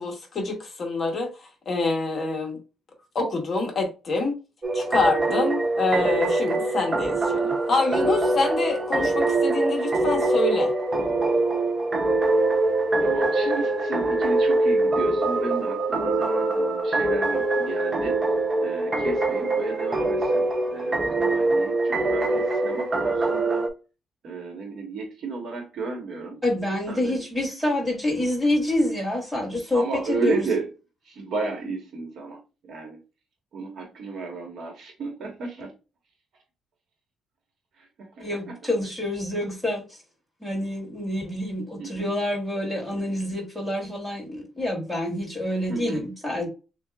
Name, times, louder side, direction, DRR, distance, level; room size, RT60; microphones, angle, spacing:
voice 1, 0.0-2.6 3.1-4.4 4.7-10.7, left 3 dB, 35° left, 1.1 m, -26 dB
sound 1, 4.6-23.7, right 2 dB, 20° right, 0.6 m, -24 dB
voice 2, 13.0-18.2 18.6-23.7 24.2-26.4 26.9-27.2 29.7-30.7 31.1-32.4 32.7-33.0 33.5-35.7 38.2-38.6 41.8-42.1 45.7-46.0, right 4 dB, 55° right, 1.2 m, -33 dB
voice 3, 26.4-30.4 38.2-39.8 40.4-46.5, left 1 dB, ahead, 1.7 m, -27 dB
6.5 x 2.3 x 2.4 m
cardioid pair, 175°, 0 cm